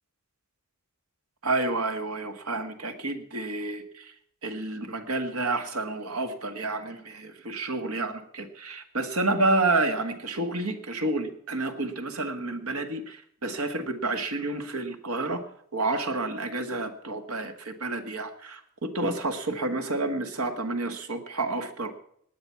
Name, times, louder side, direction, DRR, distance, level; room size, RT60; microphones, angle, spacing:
voice 1, 1.4-4.1 4.4-15.4 15.7-21.9, right 2 dB, 80° right, 8 dB, 1.8 m, -29 dB
19.5 x 9.0 x 5.8 m, 0.66 s
head